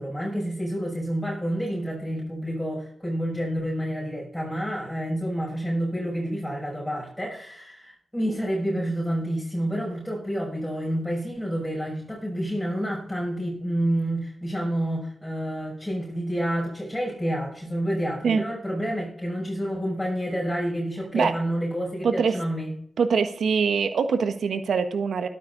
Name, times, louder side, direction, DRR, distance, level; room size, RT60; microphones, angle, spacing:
voice 1, 0.0-22.7, equal, 10° left, -3 dB, 6.4 m, -29 dB
voice 2, 22.0-22.4 23.0-25.3, right 5 dB, 75° right, 9 dB, 1.5 m, -23 dB
12.5 x 11.5 x 4.1 m, 0.64 s
supercardioid pair, 40°, 0 cm